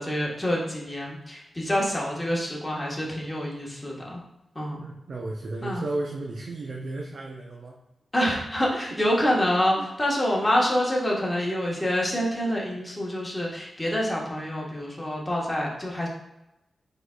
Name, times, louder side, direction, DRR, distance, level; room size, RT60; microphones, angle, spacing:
voice 1, 0.0-4.2 4.5-4.8 5.6-5.8 8.1-16.1, equal, 15° left, -3 dB, 1.4 m, -26 dB
voice 2, 4.7-7.8 8.9-9.0 9.8-9.9, right 2 dB, 65° right, -1 dB, 0.6 m, -34 dB
5.0 x 4.1 x 2.3 m, 0.91 s
wide cardioid pair, 90°, 0 cm